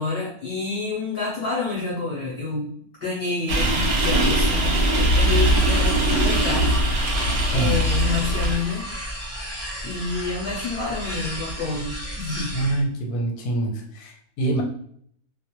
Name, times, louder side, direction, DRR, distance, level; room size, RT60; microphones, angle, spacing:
voice 1, 0.0-2.7 3.0-6.8 7.1-8.9 9.8-12.6, left 3 dB, 55° left, -5 dB, 0.6 m, -28 dB
sound 1, 3.5-8.6, right 1 dB, 65° right, 0.9 m, -21 dB
sound 2, 5.2-12.8, equal, 20° right, 0.4 m, -33 dB
voice 2, 12.5-14.6, right 2 dB, 90° left, 2 dB, 1.1 m, -25 dB
2.4 x 2.1 x 2.9 m, 0.64 s
omnidirectional pair, 1.6 m